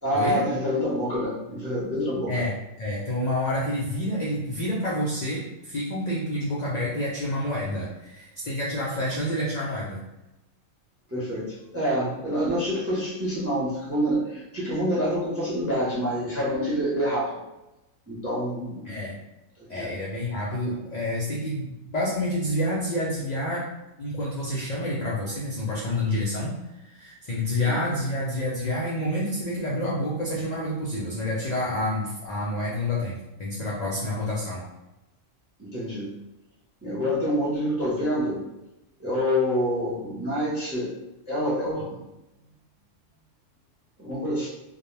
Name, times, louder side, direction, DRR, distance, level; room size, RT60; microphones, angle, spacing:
voice 1, 0.0-2.3 11.1-17.4 18.1-18.9 19.6-19.9 27.5-27.8 35.6-36.1 36.8-38.4 39.0-40.9 41.3-42.0 44.0-44.5, equal, 15° right, -7 dB, 0.5 m, -27 dB
voice 2, 2.3-10.0 18.8-19.2 19.7-23.7 24.0-26.6 26.8-34.7, left 1 dB, 60° left, -5 dB, 0.4 m, -28 dB
2.2 x 2.1 x 3.1 m, 0.96 s
omnidirectional pair, 1.3 m